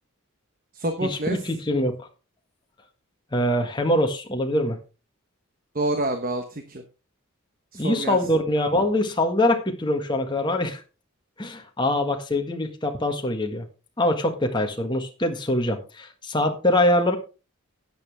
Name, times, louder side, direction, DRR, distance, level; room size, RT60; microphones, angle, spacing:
voice 1, 0.7-1.4 5.7-6.8 7.7-8.2, right 1 dB, 40° right, 7 dB, 1.1 m, -27 dB
voice 2, 1.5-2.0 3.3-4.8 7.7-10.8 11.4-13.7 14.0-17.2, left 1 dB, 20° left, 4 dB, 1.6 m, -23 dB
11.5 x 9.3 x 3.4 m, 0.31 s
head